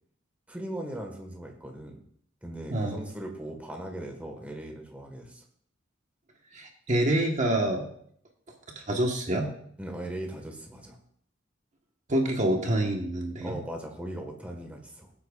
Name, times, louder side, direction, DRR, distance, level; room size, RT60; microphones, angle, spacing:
voice 1, 0.5-2.0 2.4-5.4 9.8-11.0 13.4-15.1, right 1 dB, 10° right, 2 dB, 1.5 m, -39 dB
voice 2, 2.7-3.0 6.5-7.9 8.7-9.5 12.1-13.6, right 1 dB, 40° right, 2 dB, 1.3 m, -27 dB
21.0 x 8.5 x 2.4 m, 0.64 s
head